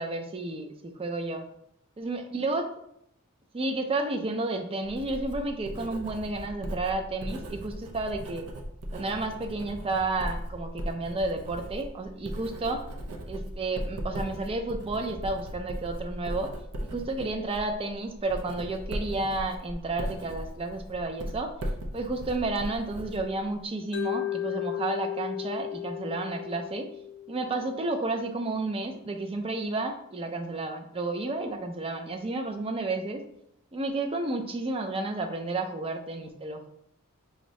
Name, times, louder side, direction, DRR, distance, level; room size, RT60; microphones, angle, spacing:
voice 1, 0.0-1.4 2.0-2.7 3.5-8.5 8.9-12.8 13.3-16.5 16.9-21.5 21.9-26.9 27.3-33.2 33.7-36.7, right 2 dB, 25° right, 6 dB, 0.4 m, -31 dB
Writing, 4.8-23.7, equal, 75° right, 0.6 m, -38 dB
Mallet percussion, 23.9-28.0, left 12 dB, 55° left, 0.5 m, -35 dB
4.9 x 2.6 x 3.1 m, 0.74 s
head